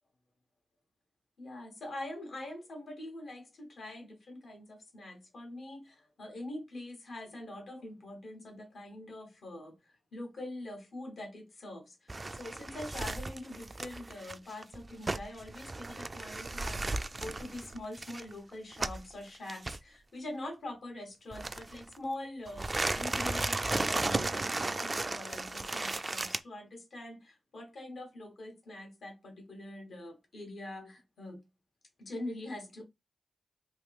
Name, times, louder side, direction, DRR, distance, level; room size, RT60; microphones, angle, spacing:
voice 1, 1.4-31.4 32.0-32.8, left 1 dB, 75° left, 1.1 m, -44 dB
sound 1, 12.1-19.1 19.5-19.8 21.3-22.0 22.5-26.4, right 2 dB, 35° right, 0.3 m, -35 dB
3.0 x 2.5 x 3.1 m
cardioid pair, 60°, 0 cm